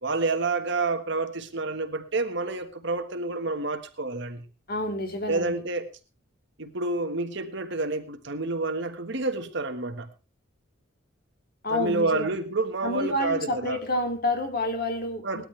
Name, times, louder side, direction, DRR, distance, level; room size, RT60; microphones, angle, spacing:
voice 1, 0.0-4.4 5.3-5.9 6.6-10.1 11.7-13.8 15.2-15.5, right 3 dB, 60° right, 1.6 m, -29 dB
voice 2, 4.7-5.5 11.6-12.3 12.8-15.5, left 1 dB, 45° left, 2.8 m, -29 dB
19.5 x 13.0 x 3.3 m
head